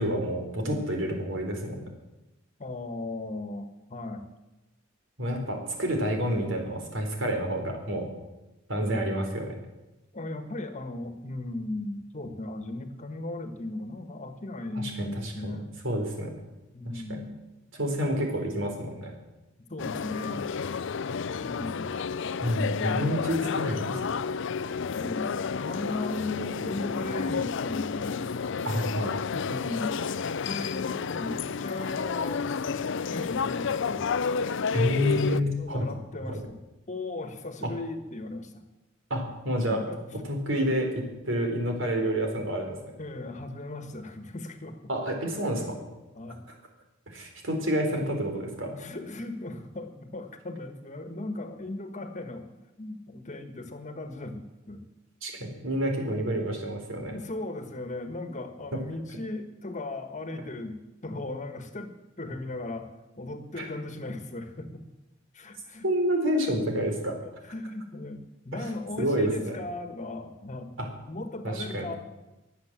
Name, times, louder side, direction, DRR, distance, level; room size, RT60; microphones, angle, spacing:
voice 1, 0.0-1.8 5.2-8.0 8.7-9.5 14.8-15.6 15.8-16.3 16.8-16.9 17.8-19.1 22.4-23.9 28.6-29.2 34.7-35.8 36.3-36.4 37.6-37.7 39.1-39.8 40.2-42.8 44.9-45.6 47.1-48.8 55.2-57.1 58.7-58.8 63.6-63.7 65.8-67.2 68.5-68.6 69.0-69.6 70.8-70.9 71.4-71.9, equal, 70° right, 3 dB, 4.0 m, -28 dB
voice 2, 2.6-4.3 8.8-9.1 10.1-15.8 16.7-17.3 19.7-20.5 21.4-21.9 22.4-23.2 23.8-24.0 24.9-28.3 29.2-30.0 30.4-32.4 33.1-34.1 35.3-36.6 36.9-38.6 39.7-40.0 43.0-44.8 45.2-45.3 46.1-46.4 48.8-54.8 56.1-56.5 57.1-60.8 61.0-62.9 63.2-64.7 65.3-65.8 67.2-70.7 71.0-72.0, left 2 dB, 40° left, 7 dB, 1.6 m, -37 dB
sound 1, 19.8-35.4, left 5 dB, 65° left, 0.5 m, -31 dB
22.5 x 8.2 x 7.5 m, 1.0 s
head